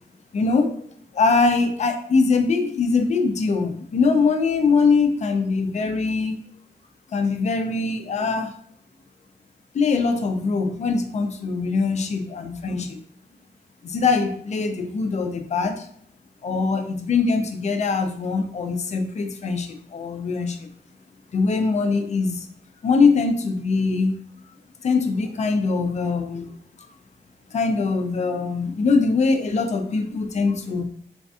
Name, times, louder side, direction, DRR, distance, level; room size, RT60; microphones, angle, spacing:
voice 1, 0.3-0.7 1.1-6.4 7.1-8.5 9.7-13.0 13.8-15.9 16.4-20.7 21.3-22.5 22.8-24.1 24.8-26.5 27.5-30.8, left 4 dB, 40° left, 6 dB, 0.4 m, -22 dB
3.3 x 2.5 x 2.3 m, 0.64 s
wide cardioid pair, 145°, 18 cm